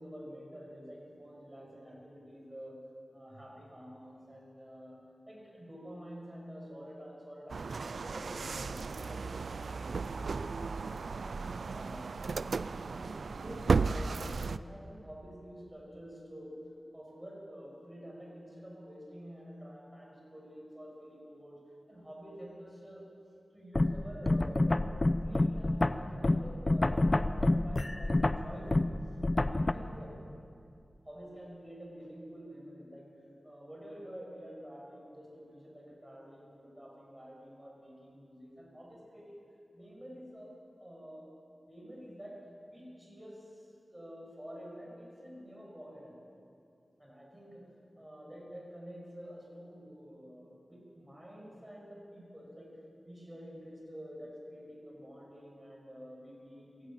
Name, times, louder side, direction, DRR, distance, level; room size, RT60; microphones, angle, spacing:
voice 1, 0.0-2.8 3.1-12.3 12.8-16.6 16.9-21.6 21.9-23.1 23.5-24.9 25.2-29.0 29.4-30.2 31.0-39.4 39.7-41.3 41.6-46.2 47.0-52.8 53.1-56.9, equal, 15° right, -2 dB, 6.4 m, -49 dB
sound 1, 7.5-14.6, right 4 dB, 85° right, 0.5 m, -34 dB
sound 2, 23.8-29.7, left 2 dB, 35° left, 0.8 m, -28 dB
22.5 x 16.0 x 9.0 m, 2.5 s
wide cardioid pair, 90°, 0 cm